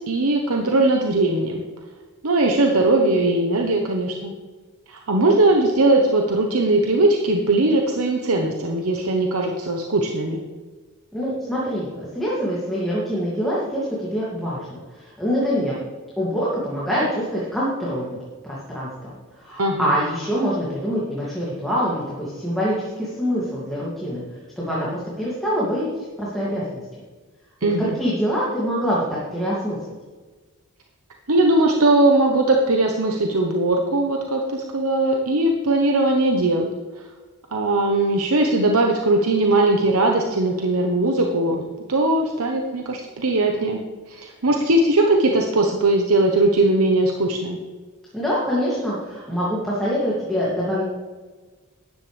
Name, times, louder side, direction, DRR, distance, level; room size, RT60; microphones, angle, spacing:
voice 1, 0.1-1.6 2.2-4.3 4.9-10.4 19.6-19.9 27.6-27.9 31.3-36.7 37.5-41.6 41.9-43.8 44.1-47.6, right 2 dB, 75° right, 2 dB, 1.0 m, -19 dB
voice 2, 11.1-15.8 16.2-18.2 18.4-24.2 24.6-25.9 26.2-26.8 27.8-29.0 29.3-29.8 48.1-50.9, equal, ahead, -8 dB, 2.4 m, -25 dB
13.0 x 10.5 x 3.4 m, 1.3 s
head